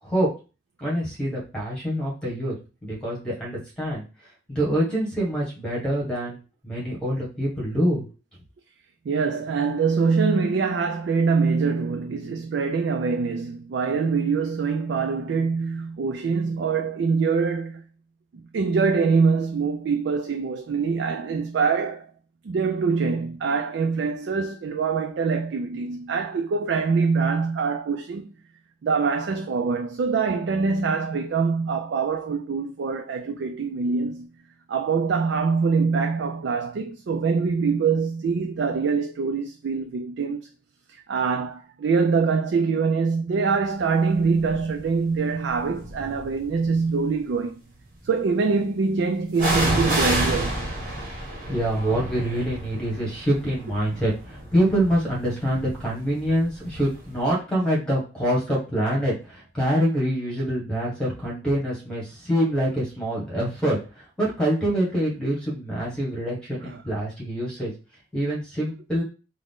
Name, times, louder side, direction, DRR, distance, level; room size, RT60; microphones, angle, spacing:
voice 1, 0.8-2.5 2.8-4.0 4.5-6.4 6.6-8.1 51.5-67.7 68.1-69.0, equal, 5° left, 1.5 m, -25 dB
voice 2, 9.1-17.8 18.5-22.1 22.4-28.3 28.8-34.3 34.7-40.5 41.1-47.6 48.0-50.6 66.7-66.8, right 5 dB, 85° right, 0.4 m, -24 dB
sound 1, 44.4-44.8 45.5-46.5 49.4-57.0 57.3-57.4, right 1 dB, 50° right, 1.2 m, -29 dB
3.6 x 2.1 x 3.6 m
head